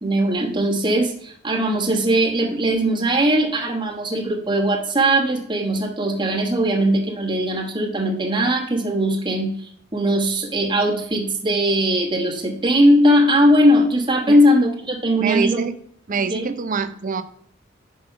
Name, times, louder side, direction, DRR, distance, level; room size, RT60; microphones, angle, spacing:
voice 1, 0.0-15.6 16.3-16.5, equal, 25° right, -1 dB, 1.2 m, -19 dB
voice 2, 15.2-15.7 16.1-17.2, right 5 dB, 45° right, 11 dB, 0.6 m, -24 dB
5.6 x 5.3 x 5.5 m, 0.65 s
head